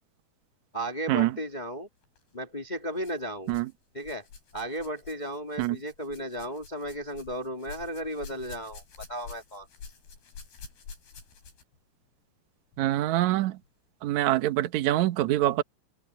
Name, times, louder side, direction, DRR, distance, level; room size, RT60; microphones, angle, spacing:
voice 1, 0.7-1.9 2.3-3.5 3.9-4.2 4.5-8.8 9.1-9.7, right 1 dB, 85° left, 0.4 m, -35 dB
sound 1, 2.0-2.2 3.0-3.7 4.0-11.8 12.7-12.8 13.6-13.7, left 5 dB, 60° left, 7.5 m, -48 dB
voice 2, 12.8-13.5 14.0-15.6, right 15 dB, 80° right, 1.6 m, -25 dB
omnidirectional pair, 5.0 m